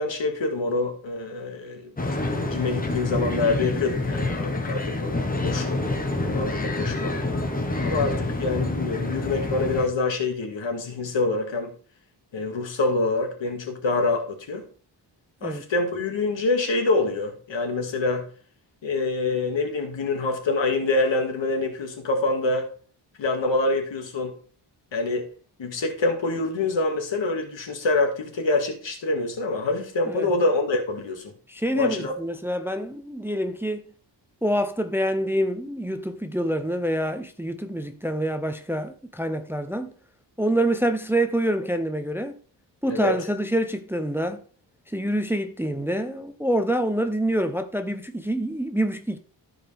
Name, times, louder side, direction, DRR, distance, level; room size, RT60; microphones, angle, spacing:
voice 1, 0.0-1.9 2.3-5.2 5.4-5.8 6.3-7.2 7.8-11.7 12.3-14.6 15.4-18.3 18.8-22.7 23.2-24.3 24.9-25.3 25.6-31.3 31.7-32.1 42.9-43.1, left 3 dB, 85° left, 2.1 m, -26 dB
sound 1, 2.0-9.9, left 2 dB, 20° left, 1.1 m, -27 dB
voice 2, 31.5-33.8 34.4-39.9 40.4-42.4 42.8-44.4 44.9-49.2, right 1 dB, 5° right, 0.5 m, -26 dB
14.0 x 5.0 x 3.4 m
wide cardioid pair, 165°, 44 cm